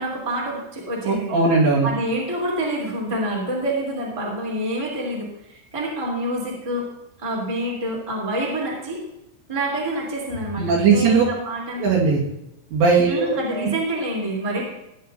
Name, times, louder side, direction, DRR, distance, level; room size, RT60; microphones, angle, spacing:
voice 1, 0.0-1.3 1.8-6.9 7.2-9.0 9.5-11.8 13.0-14.6, right 1 dB, 10° right, -4 dB, 2.1 m, -27 dB
voice 2, 1.1-1.9 10.6-11.2 11.8-12.2 12.7-13.7, right 4 dB, 65° right, -4 dB, 3.7 m, -19 dB
17.0 x 10.0 x 2.7 m, 0.83 s
omnidirectional pair, 5.9 m